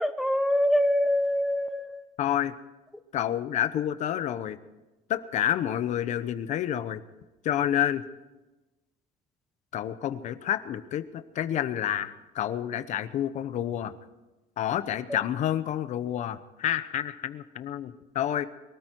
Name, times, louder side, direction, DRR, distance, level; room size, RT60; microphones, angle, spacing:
voice 1, 0.0-2.0, left 1 dB, ahead, 8 dB, 0.7 m, -24 dB
voice 2, 2.2-2.5 3.1-4.6 5.1-7.0 7.4-8.0 9.7-13.9 14.6-18.5, left 11 dB, 50° left, 12 dB, 0.9 m, -29 dB
23.0 x 13.5 x 4.6 m, 1.1 s
cardioid pair, 140°, 15 cm